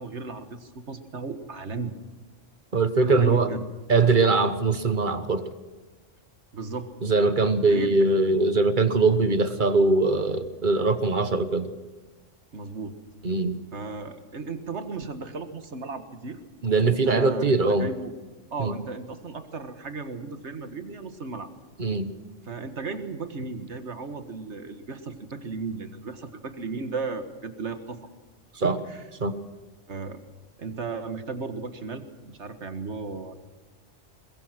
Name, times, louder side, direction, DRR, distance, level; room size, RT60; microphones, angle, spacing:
voice 1, 0.0-1.9 3.0-3.6 6.5-6.9 7.7-7.9 12.5-13.0 13.7-16.4 16.9-18.1 18.5-21.5 22.5-28.1 28.6-29.0 29.9-30.2 30.6-33.3, right 4 dB, 65° right, 8 dB, 1.9 m, -35 dB
voice 2, 2.7-3.5 3.9-5.4 7.0-11.7 13.2-13.6 16.6-17.9 18.6-18.7 21.8-22.1 28.6-28.8 29.2-29.4, right 3 dB, 40° right, 11 dB, 1.3 m, -22 dB
22.0 x 21.5 x 6.1 m, 1.3 s
omnidirectional pair, 1.3 m